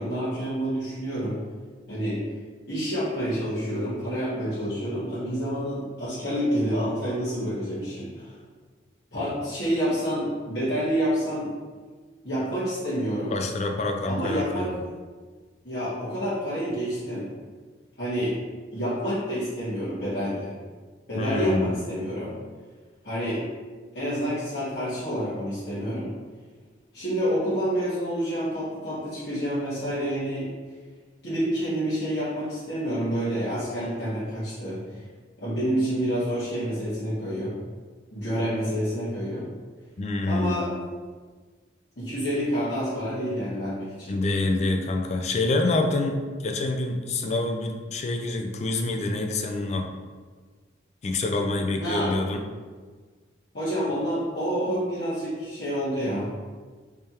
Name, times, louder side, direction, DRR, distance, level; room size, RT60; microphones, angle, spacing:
voice 1, 0.0-1.4 1.9-2.2 2.7-8.3 9.1-11.5 12.2-13.3 14.1-14.7 15.6-17.3 18.0-18.3 18.7-20.5 21.1-22.3 23.0-23.4 23.9-26.1 26.9-30.5 31.2-35.0 35.4-37.5 38.1-39.4 40.2-40.7 41.9-44.1 51.8-52.2 53.5-56.4, equal, 60° left, -13 dB, 1.5 m, -28 dB
voice 2, 13.3-14.8 21.2-21.8 40.0-40.6 44.1-46.2 46.4-49.9 51.0-52.4, left 2 dB, 35° left, 4 dB, 0.3 m, -26 dB
3.4 x 3.3 x 2.8 m, 1.5 s
head